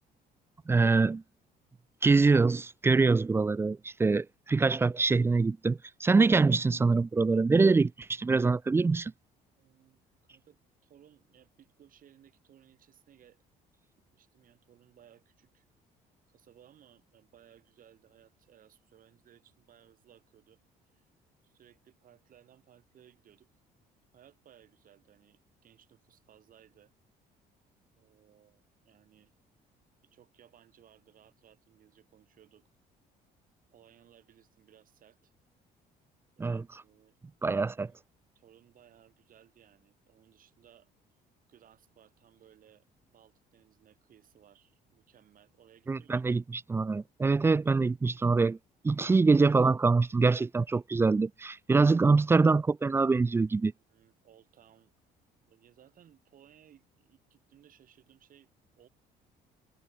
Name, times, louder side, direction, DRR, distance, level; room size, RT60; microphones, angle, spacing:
voice 1, 0.7-1.2 2.0-9.1 36.4-36.8 37.4-37.9 45.9-48.6 48.8-53.7, right 4 dB, 15° right, 0.4 m, -24 dB
voice 2, 9.6-10.0 10.3-13.4 14.1-15.7 16.3-20.6 20.9-21.0 21.4-23.5 24.1-26.9 28.0-29.3 30.1-32.7 33.7-35.3 36.4-37.1 37.8-38.0 38.3-40.9 41.5-46.3 53.9-54.9 55.4-58.9, right 10 dB, 55° right, 7.4 m, -61 dB
cardioid pair, 110°, 17 cm